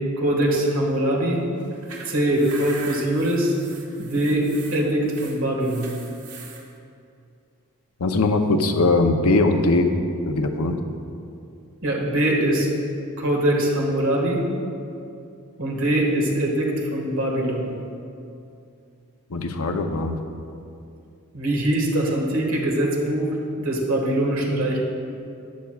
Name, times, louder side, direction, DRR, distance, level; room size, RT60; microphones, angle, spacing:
voice 1, 0.2-1.4 2.1-3.6 4.0-5.9 11.8-12.7 13.2-14.4 15.6-17.7 21.3-24.8, right 1 dB, 65° right, -1 dB, 1.7 m, -22 dB
sound 1, 1.6-6.6, right 4 dB, 90° right, 1.4 m, -41 dB
voice 2, 8.0-10.8 19.3-20.2, left 2 dB, 90° left, 6 dB, 0.7 m, -21 dB
12.5 x 9.4 x 2.4 m, 2.5 s
head